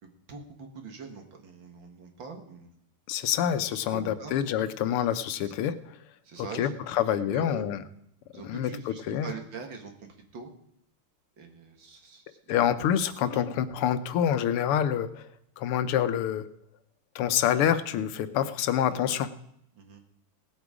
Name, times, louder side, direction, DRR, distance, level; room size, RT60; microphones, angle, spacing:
voice 1, 0.0-2.7 3.8-4.3 5.4-5.5 6.2-7.7 8.3-10.5 11.4-13.4 19.7-20.0, right 4 dB, 60° right, 3 dB, 2.2 m, -43 dB
voice 2, 3.1-6.0 6.4-7.8 8.4-9.3 12.5-15.3 15.6-16.5 17.1-19.3, left 9 dB, 85° left, 12 dB, 1.7 m, -27 dB
18.0 x 8.2 x 4.9 m, 0.74 s
omnidirectional pair, 2.4 m